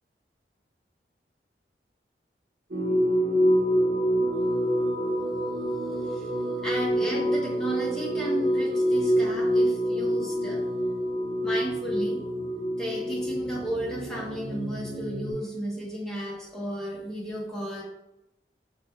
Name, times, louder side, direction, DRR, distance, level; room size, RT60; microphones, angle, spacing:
sound 1, 2.7-15.3, equal, 70° right, 0.7 m, -26 dB
voice 1, 5.9-6.3 6.6-10.7 11.4-12.2 12.8-17.8, right 1 dB, 5° left, -6 dB, 0.9 m, -34 dB
5.0 x 2.3 x 2.8 m, 0.92 s
head